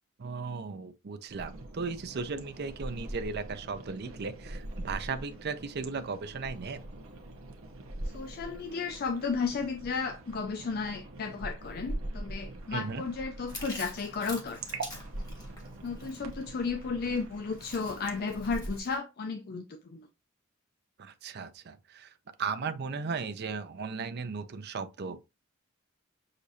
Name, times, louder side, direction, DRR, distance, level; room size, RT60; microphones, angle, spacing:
voice 1, 0.2-6.8 12.7-13.0 21.0-22.1 22.4-25.2, right 4 dB, 55° right, 0.5 m, -36 dB
sound 1, 1.3-18.8, right 1 dB, 80° right, 0.9 m, -42 dB
voice 2, 8.0-14.8 15.8-20.1, left 4 dB, 50° left, 0.4 m, -34 dB
Chewing mastication, 13.5-19.0, left 2 dB, 20° left, 1.6 m, -47 dB
6.5 x 2.6 x 2.7 m
head